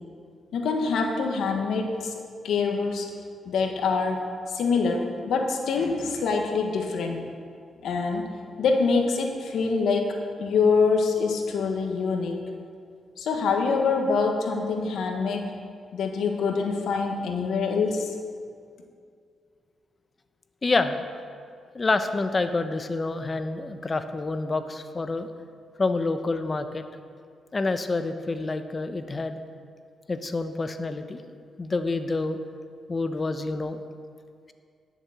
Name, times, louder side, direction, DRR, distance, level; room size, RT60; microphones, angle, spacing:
voice 1, 0.5-2.1 2.4-3.1 3.4-7.2 7.8-8.3 8.6-12.4 13.2-15.5 15.9-18.1, left 4 dB, 80° left, 3 dB, 1.4 m, -25 dB
voice 2, 20.6-20.9 21.7-25.3 25.8-26.8 27.5-29.4 30.1-31.2 31.6-32.4 32.9-33.8, left 3 dB, 35° left, 9 dB, 0.8 m, -27 dB
11.0 x 7.1 x 7.1 m, 2.2 s
cardioid pair, 75°, 0 cm